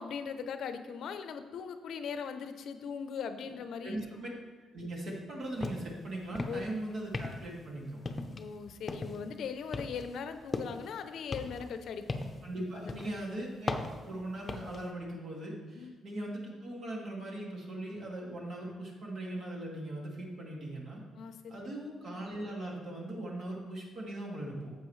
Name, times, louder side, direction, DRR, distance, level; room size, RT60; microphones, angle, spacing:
voice 1, 0.0-4.0 6.5-6.6 8.2-12.1 12.8-13.0 15.8-16.0 21.1-21.6, left 6 dB, 70° left, 9 dB, 0.6 m, -39 dB
voice 2, 3.8-4.3 4.7-8.0 12.4-13.7 14.0-21.0 21.5-24.7, right 1 dB, 60° right, -2 dB, 2.3 m, -39 dB
sound 1, 5.6-5.9 6.2-6.7 7.1-7.6 8.0-8.5 8.9-9.3 9.7-10.9 11.3-12.5 12.9-13.2 13.7-14.8, left 3 dB, 30° left, 0.7 m, -37 dB
10.5 x 7.4 x 3.2 m, 1.4 s
cardioid pair, 90°, 0 cm